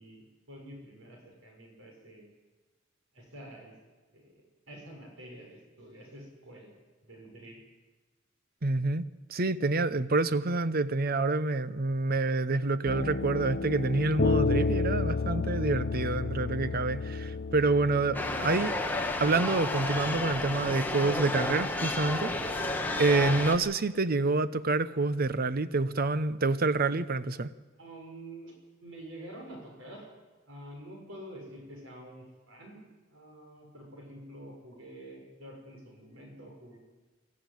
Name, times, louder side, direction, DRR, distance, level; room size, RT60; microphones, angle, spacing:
voice 1, 0.0-2.3 3.1-3.7 4.1-6.8 7.1-7.6 27.8-28.5 28.8-30.1 30.5-32.8 33.1-36.8, right 1 dB, 75° right, 6.6 m, -48 dB
voice 2, 8.6-18.7 19.2-27.5, right 3 dB, 50° right, 0.8 m, -28 dB
sound 1, 12.9-18.6, left 3 dB, 55° left, 0.6 m, -31 dB
sound 2, 18.1-23.6, left 2 dB, 10° left, 1.8 m, -31 dB
22.5 x 13.5 x 9.2 m
head